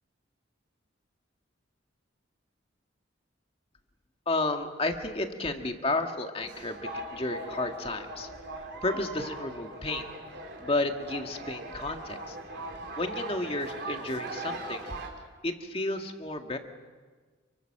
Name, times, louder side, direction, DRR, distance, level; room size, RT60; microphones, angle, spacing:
voice 1, 4.3-8.3 8.5-10.1 10.6-12.4 13.0-14.9 15.4-16.6, left 2 dB, 30° left, 5 dB, 1.8 m, -32 dB
sound 1, 6.4-15.1, right 2 dB, 55° right, 4.3 m, -40 dB
29.0 x 24.5 x 6.6 m, 1.4 s
head